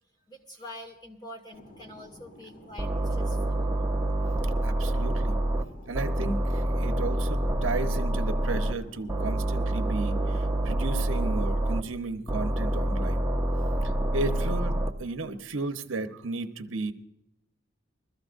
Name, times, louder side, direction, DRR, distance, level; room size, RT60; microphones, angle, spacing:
voice 1, 0.3-3.6, left 1 dB, 20° left, 2 dB, 2.0 m, -45 dB
Fixed-wing aircraft airplane, 1.5-11.7, left 1 dB, 40° left, 2.0 m, -50 dB
sound 1, 2.8-5.6 5.9-8.7 9.1-11.8 12.3-14.9, right 1 dB, 10° right, 0.8 m, -27 dB
voice 2, 4.6-5.4 5.9-13.2 14.1-16.9, right 3 dB, 80° right, 6 dB, 1.0 m, -34 dB
21.5 x 14.5 x 2.6 m, 0.84 s
head